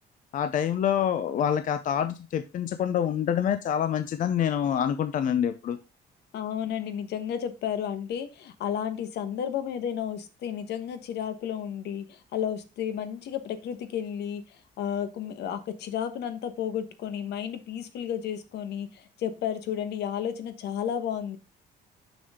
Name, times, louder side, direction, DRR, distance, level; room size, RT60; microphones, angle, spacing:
voice 1, 0.3-5.8, left 9 dB, 50° left, 11 dB, 0.6 m, -26 dB
voice 2, 6.3-21.4, left 9 dB, 75° left, 11 dB, 1.2 m, -32 dB
6.3 x 6.2 x 3.6 m, 0.29 s
cardioid pair, 135°, 17 cm